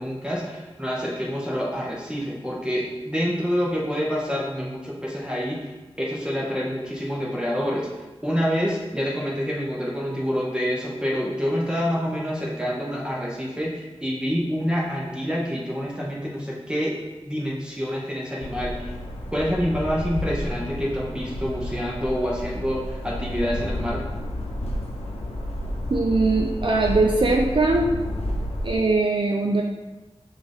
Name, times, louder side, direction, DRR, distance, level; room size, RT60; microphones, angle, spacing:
voice 1, 0.0-5.7 6.0-7.9 8.2-16.9 17.2-18.9 19.3-24.0, equal, 10° right, -5 dB, 0.7 m, -27 dB
sound 1, 18.4-28.8, left 1 dB, 85° left, 0.7 m, -31 dB
voice 2, 25.9-27.9 28.6-29.6, right 3 dB, 55° right, -1 dB, 0.4 m, -21 dB
6.1 x 2.5 x 3.4 m, 1.2 s
wide cardioid pair, 75°, 10 cm